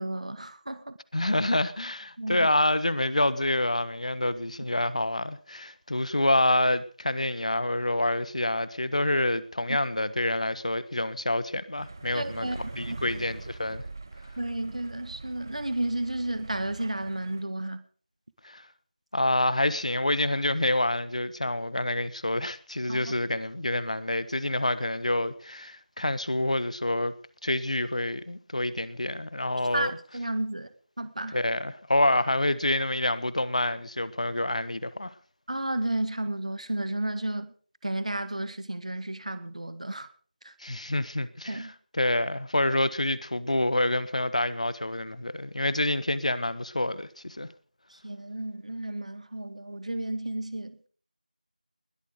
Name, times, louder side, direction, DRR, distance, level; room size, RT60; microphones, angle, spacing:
voice 1, 0.0-1.0 2.2-2.5 9.7-9.8 12.1-12.6 12.9-13.0 14.4-17.8 22.9-23.1 29.7-30.7 31.0-31.4 35.5-37.5 37.8-40.1 40.4-40.5 41.5-41.7 48.0-50.9, right 1 dB, 55° right, 2.0 m, -32 dB
voice 2, 1.1-13.8 18.4-18.6 19.1-27.1 27.4-29.9 31.3-35.1 40.6-41.7 41.9-47.5, left 1 dB, 55° left, 1.4 m, -27 dB
sound 1, 11.8-17.4, right 3 dB, 25° right, 1.3 m, -42 dB
20.5 x 12.5 x 5.2 m
figure-of-eight pair, 170°, 4 cm